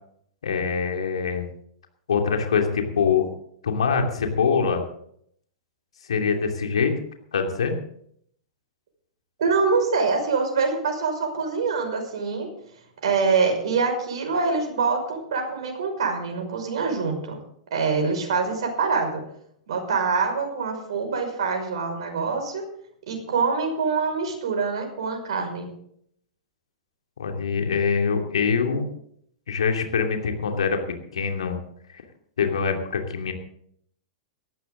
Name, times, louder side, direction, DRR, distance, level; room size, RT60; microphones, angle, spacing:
voice 1, 0.4-1.5 2.1-3.3 3.6-4.8 6.1-6.9 7.3-7.8 27.2-28.9 29.5-30.8 31.1-31.6 31.9-32.0 32.4-33.3, left 6 dB, 70° left, 3 dB, 2.8 m, -24 dB
voice 2, 9.4-12.5 13.0-17.4 17.7-19.2 19.7-22.6 23.1-25.7, right 4 dB, 60° right, 3 dB, 5.6 m, -25 dB
18.5 x 14.0 x 3.9 m, 0.66 s
figure-of-eight pair, 100°, 3 cm